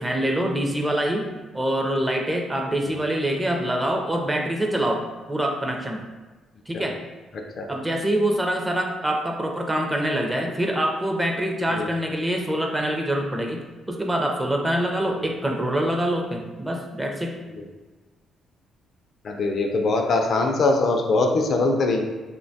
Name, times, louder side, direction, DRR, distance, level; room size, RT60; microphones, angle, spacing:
voice 1, 0.0-6.0 6.7-6.9 7.7-13.6 13.9-17.4, right 1 dB, 15° right, 1 dB, 0.4 m, -25 dB
voice 2, 19.2-22.0, left 3 dB, 55° left, 3 dB, 0.4 m, -22 dB
3.0 x 2.1 x 2.6 m, 1.2 s
cardioid pair, 90°, 0 cm